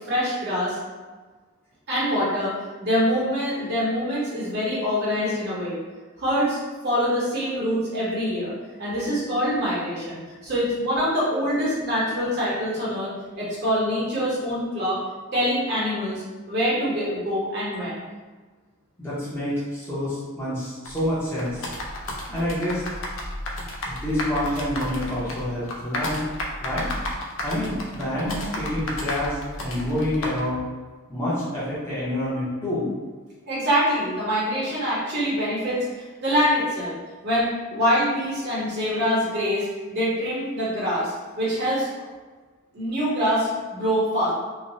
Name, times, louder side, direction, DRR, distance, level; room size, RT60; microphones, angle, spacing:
voice 1, 0.1-0.8 1.9-5.8 6.2-6.6 6.8-8.5 8.8-15.0 15.3-18.0 33.5-36.9 37.2-42.1 42.7-44.3, equal, 50° right, -7 dB, 0.8 m, -25 dB
voice 2, 19.0-21.7 22.3-22.8 23.9-26.2 26.6-26.9 27.4-30.6 31.1-32.9, left 1 dB, 10° left, -11 dB, 0.7 m, -27 dB
sound 1, 20.8-30.4, left 1 dB, 60° left, 0.5 m, -32 dB
3.1 x 2.1 x 2.6 m, 1.3 s
head